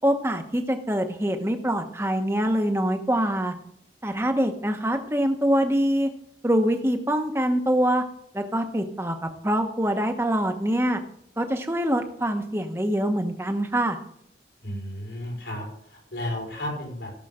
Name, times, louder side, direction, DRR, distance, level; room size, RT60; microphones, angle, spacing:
voice 1, 0.0-3.5 4.0-6.1 6.4-8.0 8.3-9.1 9.4-11.0 11.4-14.0, equal, 15° right, 5 dB, 1.1 m, -24 dB
voice 2, 14.6-15.6 15.9-17.1, left 1 dB, 85° left, -1 dB, 5.1 m, -33 dB
16.5 x 7.4 x 3.7 m, 0.72 s
head